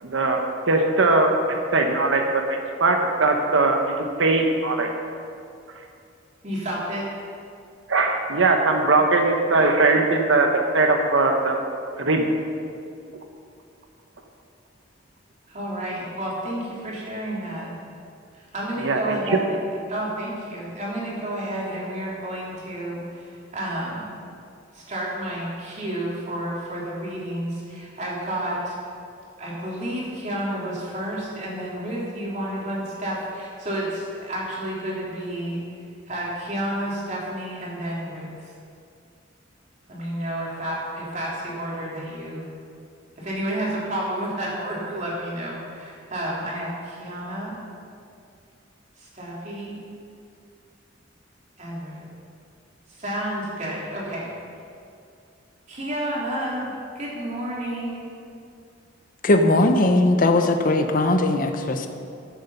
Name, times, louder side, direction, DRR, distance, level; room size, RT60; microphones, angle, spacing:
voice 1, 0.0-1.3 1.7-2.4 2.8-4.9 7.9-10.5 10.7-11.6 12.0-12.3 18.8-19.4, right 3 dB, 80° right, 3 dB, 1.0 m, -20 dB
voice 2, 6.4-7.1 15.5-17.7 18.3-19.5 19.9-24.1 24.7-28.8 29.4-35.6 36.1-38.5 39.9-42.5 43.2-47.6 49.0-49.8 51.6-52.0 52.9-54.3 55.7-58.1, right 1 dB, 40° right, -5 dB, 3.2 m, -30 dB
voice 3, 59.2-61.9, left 2 dB, 45° left, 6 dB, 0.7 m, -19 dB
14.0 x 8.0 x 5.5 m, 2.4 s
head